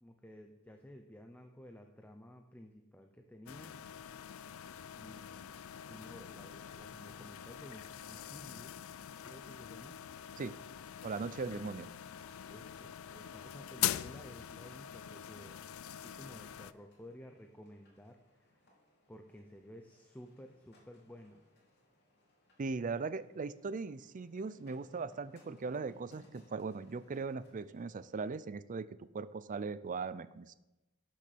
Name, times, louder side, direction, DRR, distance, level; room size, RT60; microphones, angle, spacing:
voice 1, 0.0-3.7 5.0-8.8 9.2-10.0 11.6-11.8 12.5-18.8 19.1-21.4, equal, 10° left, 4 dB, 0.7 m, -54 dB
sound 1, 3.5-16.7, left 11 dB, 80° left, 0.4 m, -43 dB
sound 2, 8.9-28.4, left 1 dB, 55° left, 3.0 m, -68 dB
voice 2, 11.0-11.9 22.6-30.5, right 4 dB, 40° right, 16 dB, 0.4 m, -39 dB
12.0 x 6.4 x 6.0 m, 1.0 s
head